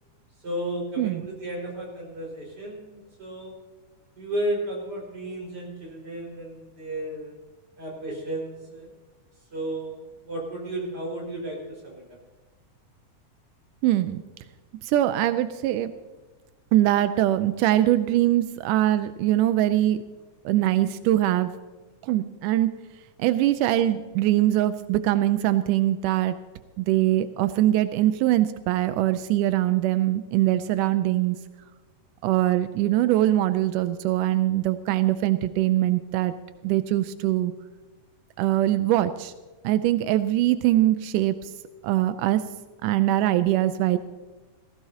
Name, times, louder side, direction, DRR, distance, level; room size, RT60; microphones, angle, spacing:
voice 1, 0.4-3.5 4.2-7.4 7.8-8.9 9.5-12.0, right 1 dB, 30° right, -2 dB, 5.4 m, -33 dB
voice 2, 13.8-14.2 14.8-15.9 16.7-20.0 20.5-21.5 22.0-22.7 23.2-26.4 26.8-31.4 32.2-36.3 36.6-37.5 38.4-39.3 39.6-41.5 41.8-42.4 42.8-44.0, right 14 dB, 90° right, 11 dB, 2.1 m, -22 dB
18.5 x 16.5 x 2.8 m, 1.3 s
omnidirectional pair, 3.6 m